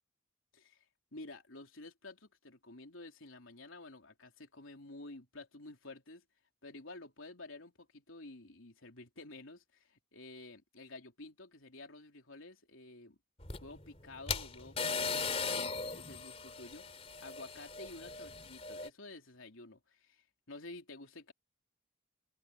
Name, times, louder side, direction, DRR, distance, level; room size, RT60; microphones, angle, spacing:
voice 1, 0.5-6.2 6.6-13.2 13.6-16.9 17.2-21.3, left 2 dB, 85° left, 3.5 m, -51 dB
sound 1, 13.4-18.9, left 4 dB, 30° left, 3.3 m, -38 dB
open air
head